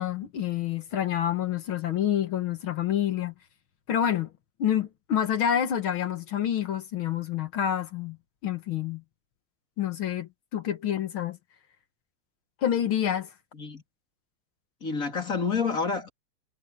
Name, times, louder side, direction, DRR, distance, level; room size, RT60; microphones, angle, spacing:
voice 1, 0.0-3.3 3.9-4.3 4.6-8.2 8.4-9.0 9.8-11.4 12.6-13.3, left 10 dB, 75° left, 2.1 m, -28 dB
voice 2, 14.8-16.1, left 5 dB, 40° left, 3.5 m, -28 dB
omnidirectional pair, 2.3 m